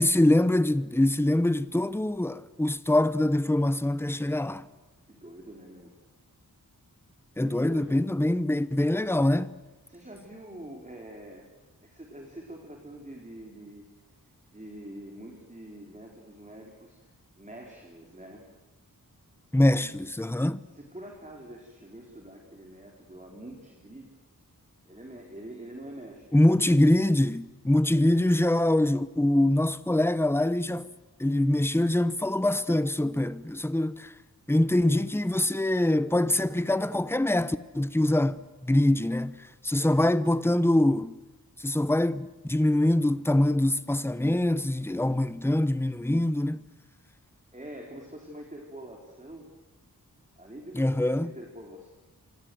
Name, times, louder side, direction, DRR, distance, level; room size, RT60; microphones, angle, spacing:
voice 1, 0.0-4.6 7.4-9.5 19.5-20.6 26.3-30.9 31.2-34.1 34.5-41.2 41.6-46.6 50.8-51.3, left 1 dB, 5° left, 0.9 m, -24 dB
voice 2, 5.1-5.9 7.4-8.0 9.9-11.5 11.8-13.8 14.5-17.1 17.4-18.5 20.7-24.1 24.9-26.8 27.9-28.2 39.7-40.0 47.5-49.5 50.4-51.9, right 1 dB, 20° right, 4.1 m, -45 dB
28.0 x 26.0 x 7.9 m
wide cardioid pair, 80°, 36 cm